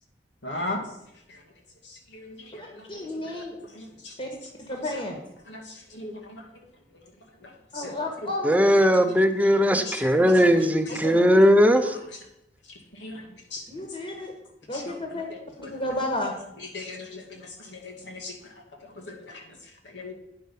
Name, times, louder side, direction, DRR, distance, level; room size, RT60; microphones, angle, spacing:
voice 1, 0.4-0.8 2.1-2.6 3.2-3.3 3.8-4.1 5.5-5.6 5.9-6.4 7.7-7.9 9.5-10.1 10.9-11.0 13.0-13.1 13.5-13.6 14.7-14.8 15.6-15.7 16.7-17.2 17.7-18.3 19.9-20.1, left 2 dB, 90° left, 1 dB, 2.2 m, -36 dB
voice 2, 2.6-3.6 4.2-4.3 4.7-5.2 7.7-8.6 11.0-11.4 13.7-14.3 14.7-15.3 15.6-16.3, left 1 dB, 35° left, 2 dB, 1.7 m, -32 dB
voice 3, 8.4-11.9, equal, 10° right, 8 dB, 0.7 m, -19 dB
9.6 x 6.0 x 5.4 m, 0.82 s
head